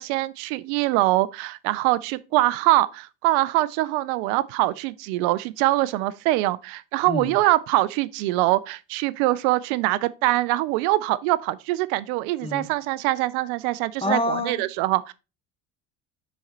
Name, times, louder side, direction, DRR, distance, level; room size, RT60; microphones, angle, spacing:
voice 1, 0.0-15.1, right 17 dB, 75° right, 0.5 m, -23 dB
voice 2, 14.0-14.6, left 2 dB, 15° left, 1.1 m, -26 dB
6.3 x 4.2 x 4.3 m
supercardioid pair, 80°, 42 cm